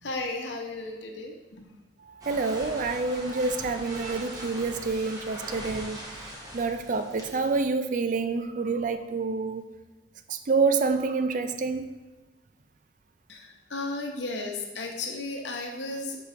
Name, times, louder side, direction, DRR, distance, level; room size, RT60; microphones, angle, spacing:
voice 1, 0.0-1.6 13.3-16.2, left 2 dB, 80° left, 2 dB, 0.9 m, -34 dB
voice 2, 2.1-6.1 6.5-9.6 10.3-11.9, right 4 dB, 45° right, 8 dB, 0.4 m, -27 dB
sound 1, 2.2-7.6, equal, 20° right, 0.9 m, -41 dB
4.8 x 4.8 x 4.4 m, 1.2 s
head